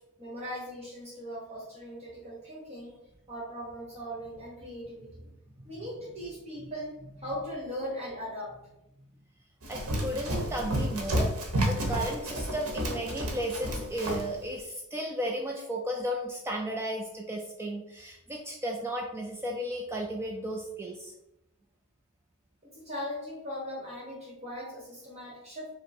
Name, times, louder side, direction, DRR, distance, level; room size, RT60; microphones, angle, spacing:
voice 1, 0.2-2.9 3.3-5.3 5.6-8.5 22.6-25.7, equal, 30° right, -4 dB, 1.1 m, -39 dB
Run, 9.6-14.3, right 1 dB, 85° right, 1.0 m, -31 dB
voice 2, 9.7-11.3 11.7-21.1, equal, 10° right, 0 dB, 0.4 m, -34 dB
5.2 x 2.1 x 4.2 m, 0.89 s
head